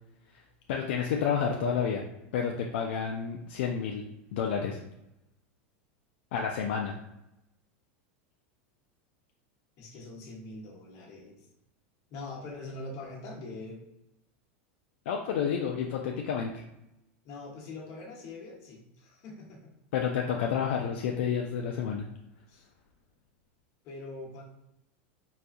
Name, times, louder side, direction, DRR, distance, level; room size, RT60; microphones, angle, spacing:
voice 1, 0.7-2.0 2.3-4.0 4.3-4.8 6.3-7.0 15.1-16.6 19.9-22.0, left 7 dB, 75° left, 1 dB, 0.4 m, -30 dB
voice 2, 9.8-11.5 12.1-13.8 17.2-19.7 22.5-22.7 23.8-24.4, left 2 dB, 50° left, -1 dB, 1.1 m, -43 dB
4.1 x 2.3 x 2.5 m, 0.88 s
supercardioid pair, 125°, 6 cm